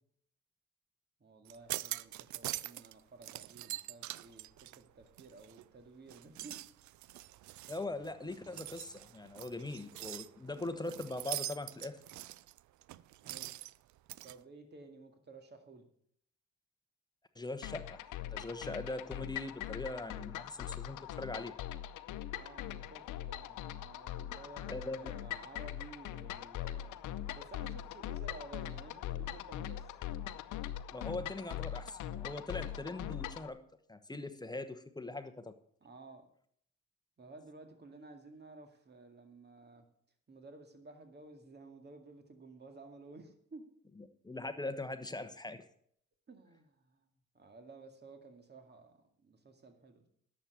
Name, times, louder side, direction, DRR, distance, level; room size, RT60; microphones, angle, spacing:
voice 1, 1.2-6.6 13.2-13.5 14.2-15.9 22.4-27.0 27.3-29.9 35.8-36.2 37.2-39.8 40.3-43.7 46.3-47.1 47.3-50.1, right 3 dB, 35° right, 5 dB, 2.2 m, -54 dB
sound 1, 1.5-2.9 3.2-5.7 6.1-14.3, right 15 dB, 70° right, 0.5 m, -44 dB
voice 2, 7.7-12.0 17.3-21.5 24.7-25.1 30.9-33.6 33.9-35.5 44.0-45.7, left 2 dB, 15° left, 9 dB, 1.1 m, -41 dB
sound 2, 17.6-33.5, left 12 dB, 85° left, 0.7 m, -42 dB
11.0 x 7.5 x 6.9 m, 0.65 s
cardioid pair, 90°, 30 cm